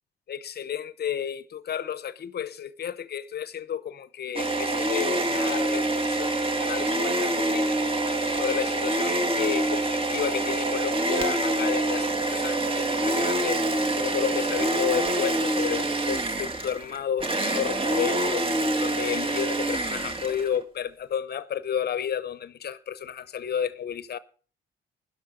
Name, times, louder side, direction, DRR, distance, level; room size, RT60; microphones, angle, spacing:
voice 1, 0.3-24.2, left 8 dB, 55° left, 0.9 m, -32 dB
sound 1, 4.3-20.6, right 1 dB, 30° right, 2.2 m, -26 dB
14.0 x 11.0 x 5.1 m
cardioid pair, 90°, 20 cm